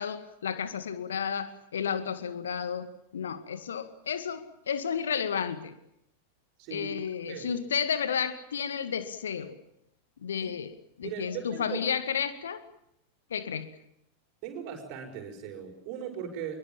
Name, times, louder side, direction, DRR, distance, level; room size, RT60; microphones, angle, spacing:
voice 1, 0.0-5.8 6.7-9.6 10.2-10.7 11.0-12.6 13.3-13.7, left 7 dB, 65° left, 2.1 m, -32 dB
voice 2, 6.6-6.9 7.2-7.5 10.4-10.5 11.0-11.8 14.4-16.6, right 8 dB, 45° right, 5.6 m, -38 dB
26.5 x 23.0 x 7.3 m
figure-of-eight pair, 90°, 0 cm